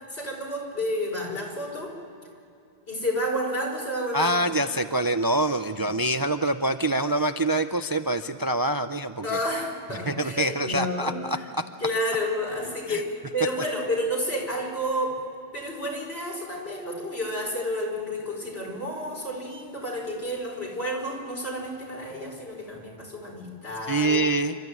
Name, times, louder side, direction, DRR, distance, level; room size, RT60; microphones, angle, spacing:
voice 1, 0.1-1.9 2.9-4.5 5.7-5.9 9.2-11.2 11.8-15.2 15.5-24.2, equal, 75° left, -1 dB, 5.2 m, -30 dB
voice 2, 4.1-9.3 10.1-11.6 12.9-13.0 23.9-24.6, right 1 dB, 30° right, 9 dB, 0.4 m, -25 dB
29.0 x 13.0 x 9.3 m, 2.6 s
omnidirectional pair, 1.1 m